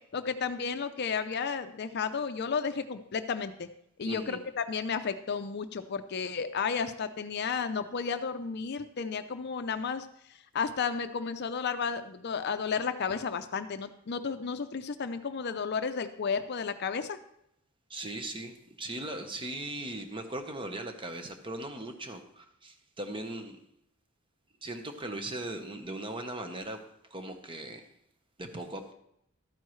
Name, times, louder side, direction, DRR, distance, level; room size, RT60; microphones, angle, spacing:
voice 1, 0.1-3.7 4.0-10.1 10.5-17.2, left 5 dB, 50° left, 10 dB, 0.5 m, -32 dB
voice 2, 4.1-4.4 17.9-23.6 24.6-26.8 27.1-27.8 28.4-28.9, right 1 dB, 25° right, 6 dB, 1.0 m, -39 dB
13.0 x 9.2 x 3.2 m, 0.76 s
head